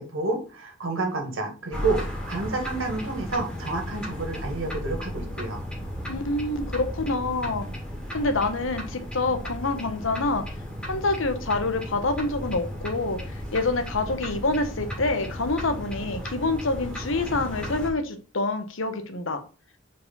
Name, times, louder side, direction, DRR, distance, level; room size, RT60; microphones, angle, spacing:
voice 1, 0.0-5.6, right 3 dB, 75° right, 2 dB, 1.9 m, -29 dB
sound 1, 1.7-17.9, equal, 5° left, 2.2 m, -35 dB
voice 2, 6.1-7.7 8.1-10.4 10.9-19.4, left 2 dB, 70° left, 8 dB, 1.1 m, -27 dB
4.8 x 4.7 x 5.4 m, 0.36 s
head